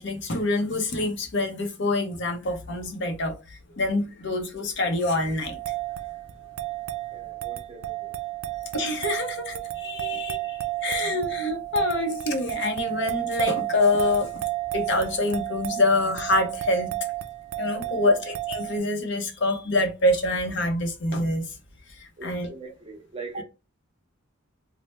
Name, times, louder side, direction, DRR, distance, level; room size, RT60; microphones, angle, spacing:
voice 1, 0.0-5.6 8.7-14.4 14.7-16.9 17.6-21.5 22.0-22.5, left 2 dB, 55° left, 0.6 m, -26 dB
sound 1, 5.4-18.8, right 16 dB, 80° right, 0.3 m, -32 dB
voice 2, 7.1-8.1 10.1-10.2 17.8-18.2 22.2-23.4, right 3 dB, 25° right, 0.7 m, -41 dB
3.2 x 2.0 x 3.0 m
head